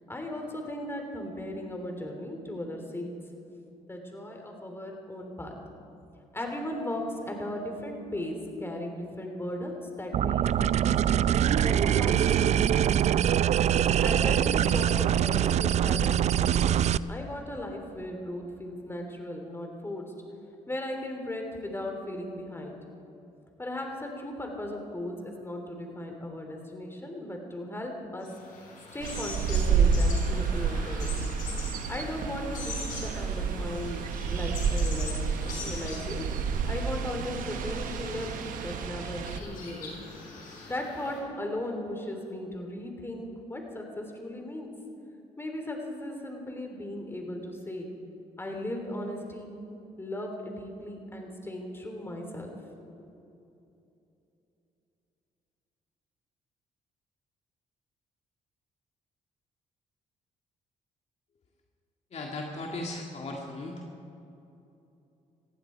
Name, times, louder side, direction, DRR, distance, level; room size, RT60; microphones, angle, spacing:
voice 1, 0.1-3.1 3.9-5.5 6.3-8.3 8.6-10.5 11.6-12.6 14.0-16.8 17.1-20.0 20.7-22.7 23.6-28.3 28.9-31.2 31.9-34.0 34.3-36.2 36.6-38.3 38.6-40.0 40.7-44.7 45.4-47.9 48.4-49.5 50.0-52.5 52.8-52.9, left 1 dB, 15° left, 2 dB, 3.5 m, -37 dB
sound 1, 10.1-17.0, right 10 dB, 55° right, 0.4 m, -23 dB
sound 2, 28.2-41.2, left 4 dB, 75° left, 4.7 m, -43 dB
sound 3, 29.0-39.4, right 5 dB, 75° right, 1.1 m, -29 dB
voice 2, 62.1-63.8, left 2 dB, 50° left, 0 dB, 2.0 m, -37 dB
19.5 x 15.0 x 4.6 m, 2.8 s
supercardioid pair, 75°, 14 cm